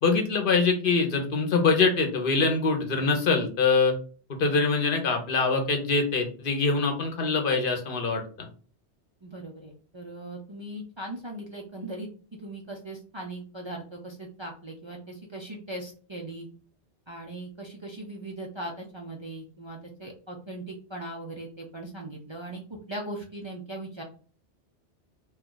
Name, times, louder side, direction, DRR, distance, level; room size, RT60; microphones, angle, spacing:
voice 1, 0.0-3.9 4.3-8.5, left 4 dB, 55° left, 4 dB, 0.9 m, -24 dB
voice 2, 9.2-12.1 12.4-16.5 17.1-24.0, right 1 dB, 40° right, -1 dB, 0.4 m, -39 dB
2.7 x 2.4 x 3.7 m, 0.40 s
omnidirectional pair, 1.2 m